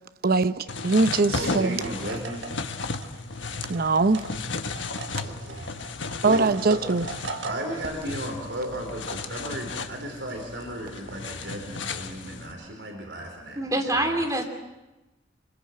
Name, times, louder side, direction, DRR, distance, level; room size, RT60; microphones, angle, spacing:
voice 1, 0.2-1.8 3.6-4.3 6.2-7.1, right 3 dB, 55° right, 0.7 m, -22 dB
sound 1, 0.7-12.5, left 4 dB, 85° left, 1.4 m, -35 dB
voice 2, 1.3-2.5 5.0-5.7 6.2-6.8 7.4-14.2, right 1 dB, 70° right, 4.7 m, -35 dB
sound 2, 1.6-8.2, right 3 dB, 85° right, 1.7 m, -40 dB
voice 3, 13.6-14.4, right 1 dB, 20° right, 3.0 m, -25 dB
25.5 x 22.0 x 7.7 m
head